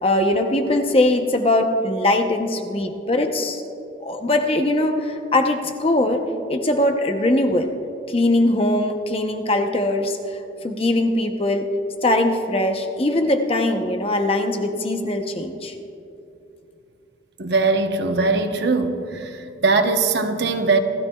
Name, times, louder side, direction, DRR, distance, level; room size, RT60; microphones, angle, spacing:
voice 1, 0.0-3.6 4.0-6.2 6.5-7.7 8.1-10.2 10.6-11.7 12.0-15.7, left 1 dB, 30° left, 5 dB, 0.8 m, -21 dB
voice 2, 17.4-19.3 19.6-20.8, right 3 dB, 60° right, 6 dB, 0.9 m, -20 dB
28.5 x 14.0 x 2.4 m, 2.7 s
head